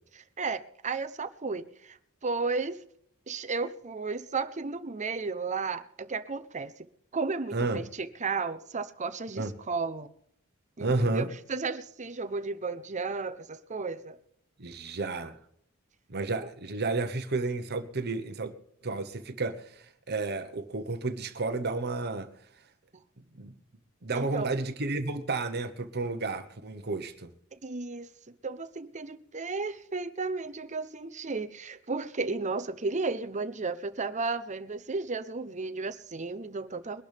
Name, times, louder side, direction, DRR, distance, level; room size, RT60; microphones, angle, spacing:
voice 1, 0.4-2.8 3.3-6.9 7.1-10.1 10.8-14.2 16.4-16.5 24.1-24.5 27.6-28.1 28.4-37.0, right 4 dB, 35° right, 0.8 m, -34 dB
voice 2, 7.5-7.8 9.4-9.5 10.8-11.3 14.6-15.4 16.1-18.5 18.8-22.3 23.3-23.5 24.0-27.3, right 3 dB, 50° right, 1.1 m, -31 dB
22.5 x 12.0 x 3.5 m
head